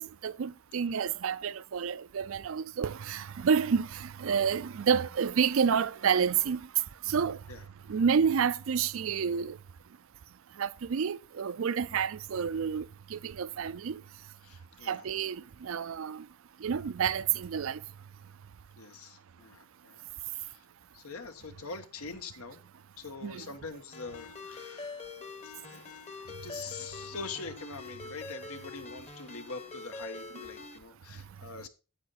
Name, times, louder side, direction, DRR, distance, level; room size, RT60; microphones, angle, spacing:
voice 1, 0.0-6.7 7.0-7.4 7.9-9.6 10.6-14.0 14.8-16.3 16.6-17.8 23.2-23.5, right 6 dB, 65° right, 0.4 m, -29 dB
voice 2, 14.4-15.0 18.8-20.6 20.9-22.6 23.0-25.1 25.4-31.7, left 4 dB, 85° left, 1.3 m, -44 dB
Ringtone, 23.9-30.8, left 4 dB, 30° left, 1.0 m, -44 dB
9.6 x 8.0 x 4.0 m
head